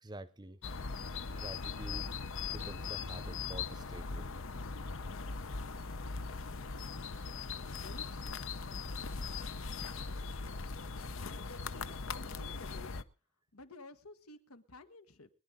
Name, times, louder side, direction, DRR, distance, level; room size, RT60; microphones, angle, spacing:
voice 1, 0.0-0.6 1.3-2.1 2.4-4.3, right 1 dB, 20° right, 0.8 m, -48 dB
sound 1, 0.6-13.0, left 4 dB, 65° left, 0.8 m, -40 dB
voice 2, 7.8-8.4 11.2-13.0 13.5-15.3, left 2 dB, 80° left, 1.5 m, -53 dB
23.0 x 10.5 x 3.9 m
head